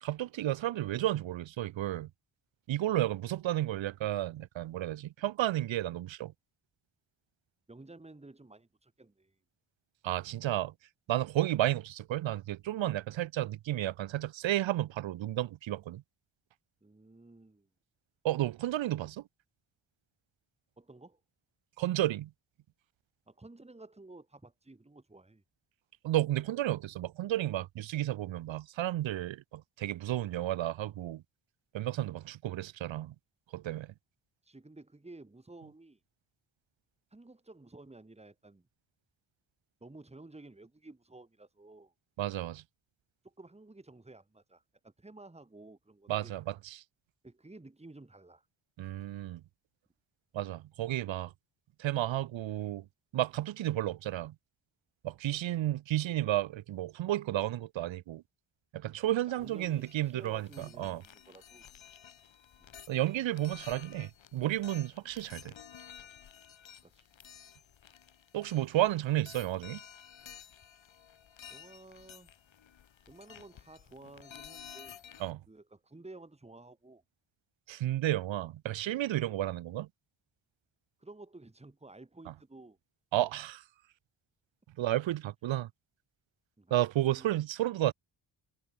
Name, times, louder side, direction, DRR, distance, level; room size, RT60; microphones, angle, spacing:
voice 1, 0.0-2.1 2.7-6.3 10.0-10.7 11.1-16.0 18.2-19.2 21.8-22.3 26.0-31.2 31.7-33.1 33.5-33.9 42.2-42.6 46.1-46.8 48.8-49.4 50.3-51.3 51.8-52.8 53.1-54.3 55.0-58.2 58.7-61.0 62.9-65.5 68.3-69.8 75.2-75.4 77.7-79.9 83.1-83.6 84.8-85.7 86.7-87.9, right 14 dB, 75° right, 0.6 m, -32 dB
voice 2, 7.7-9.3 16.8-17.7 20.8-21.2 23.3-25.4 34.4-36.0 37.1-38.7 39.8-41.9 43.2-46.4 47.2-48.4 55.3-55.7 59.3-61.7 62.6-62.7 66.8-67.1 71.5-72.3 73.1-75.0 75.5-77.0 81.0-82.8 86.6-86.7 87.0-87.3, right 2 dB, 15° right, 3.3 m, -53 dB
sound 1, 59.4-75.3, left 8 dB, 75° left, 4.3 m, -53 dB
wide cardioid pair, 165°, 46 cm